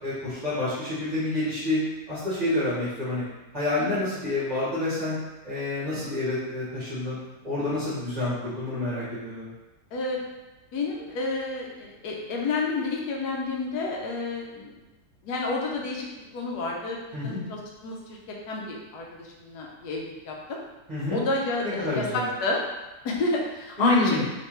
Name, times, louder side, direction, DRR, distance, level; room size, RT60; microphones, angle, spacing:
voice 1, 0.0-1.8 2.1-3.2 3.5-5.2 5.4-7.2 7.4-9.5 17.1-17.4 20.9-21.2 21.8-22.3 23.8-24.2, left 2 dB, 30° right, -13 dB, 1.2 m, -28 dB
voice 2, 10.7-14.7 15.2-16.1 16.3-18.2 18.5-20.6 21.1-22.6 23.0-24.2, left 3 dB, 80° left, -1 dB, 1.2 m, -30 dB
3.2 x 3.2 x 3.1 m, 1.1 s
omnidirectional pair, 1.7 m